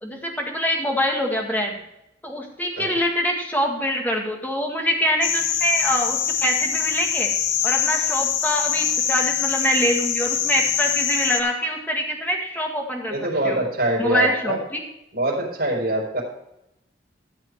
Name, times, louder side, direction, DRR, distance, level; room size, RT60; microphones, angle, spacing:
voice 1, 0.0-1.8 2.2-7.3 7.6-13.1 13.4-13.6 14.0-14.8, equal, 10° left, 1 dB, 1.9 m, -24 dB
sound 1, 5.2-11.4, left 8 dB, 85° left, 1.1 m, -24 dB
voice 2, 13.1-14.6 15.1-16.2, right 1 dB, 55° right, -2 dB, 4.4 m, -24 dB
13.5 x 7.5 x 4.7 m, 0.84 s
head